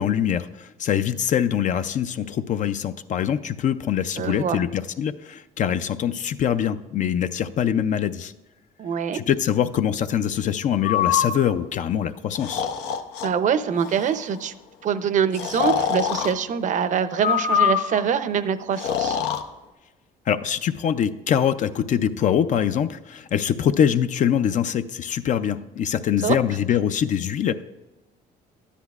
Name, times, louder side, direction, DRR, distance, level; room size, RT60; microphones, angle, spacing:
voice 1, 0.0-8.3 9.1-12.6 20.3-27.6, left 9 dB, 45° left, 11 dB, 0.4 m, -23 dB
voice 2, 4.2-4.6 8.8-9.2 13.2-14.5 14.8-19.2 26.2-26.4, right 7 dB, 50° right, 13 dB, 0.6 m, -24 dB
Breathing, 10.8-11.3 12.3-13.3 13.8-14.2 15.3-16.3 17.2-18.0 18.7-19.4, left 8 dB, 85° left, 0.7 m, -24 dB
12.5 x 9.9 x 2.4 m, 1.1 s
cardioid pair, 110°, 17 cm